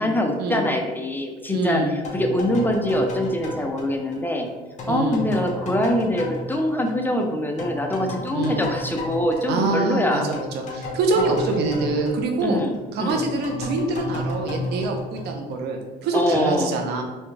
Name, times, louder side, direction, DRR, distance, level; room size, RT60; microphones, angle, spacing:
voice 1, 0.0-4.5 4.9-10.3 11.1-11.4 12.4-13.3 16.1-16.7, left 1 dB, 10° left, 3 dB, 0.5 m, -24 dB
voice 2, 1.5-1.9 4.9-5.2 8.3-8.6 9.5-12.6 12.9-17.0, right 3 dB, 75° right, 3 dB, 0.8 m, -25 dB
sound 1, 2.0-7.3 7.6-15.8, left 1 dB, 45° left, 1.2 m, -33 dB
4.4 x 3.3 x 3.3 m, 1.3 s
cardioid pair, 110°, 17 cm